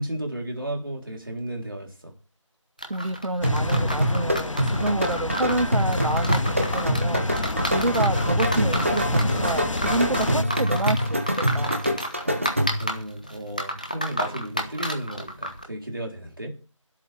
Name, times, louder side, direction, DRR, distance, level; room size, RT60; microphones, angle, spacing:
voice 1, 0.0-2.1 12.2-16.5, right 1 dB, 40° right, 1 dB, 3.9 m, -34 dB
sound 1, 2.8-15.6, equal, 15° left, 1.1 m, -32 dB
voice 2, 2.9-7.3 7.7-11.8, right 2 dB, 65° right, 15 dB, 0.8 m, -28 dB
sound 2, 3.4-10.4, left 2 dB, 70° left, 0.6 m, -30 dB
sound 3, 3.4-13.0, equal, 25° right, 1.4 m, -25 dB
24.0 x 8.5 x 3.5 m, 0.35 s
figure-of-eight pair, 175°, 17 cm